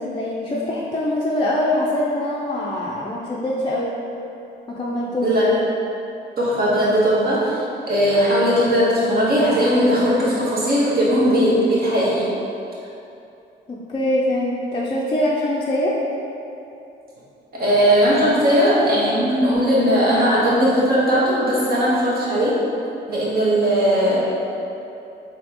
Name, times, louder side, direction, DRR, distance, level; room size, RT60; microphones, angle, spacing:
voice 1, 0.0-4.0 4.7-5.3 13.7-15.9, left 1 dB, 25° left, -5 dB, 0.4 m, -23 dB
voice 2, 5.2-5.6 6.4-12.3 17.5-22.6 23.1-24.2, equal, 50° right, -7 dB, 1.2 m, -18 dB
4.2 x 2.8 x 2.9 m, 2.8 s
cardioid pair, 90°, 20 cm